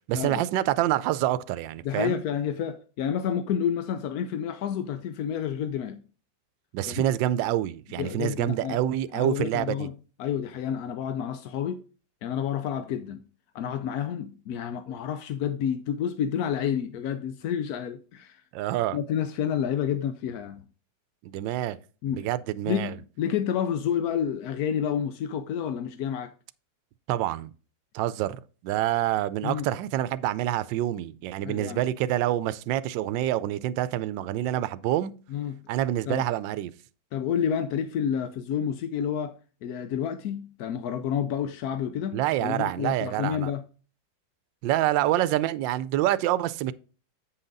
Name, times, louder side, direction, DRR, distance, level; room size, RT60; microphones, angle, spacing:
voice 1, 0.1-2.2 6.7-9.9 18.5-19.0 21.2-21.8 22.1-22.9 27.1-27.5 27.9-35.1 35.7-36.7 42.1-43.5 44.6-46.7, right 13 dB, 80° right, 1.2 m, -27 dB
voice 2, 1.8-6.0 6.9-7.1 8.0-8.8 9.1-9.9 10.2-11.8 12.2-13.3 13.5-18.4 18.9-20.6 22.0-22.3 22.7-26.3 29.4-29.7 31.4-31.8 35.3-35.6 36.1-36.2 37.1-43.6, left 8 dB, 70° left, 0.9 m, -29 dB
8.4 x 5.7 x 3.9 m
omnidirectional pair, 2.1 m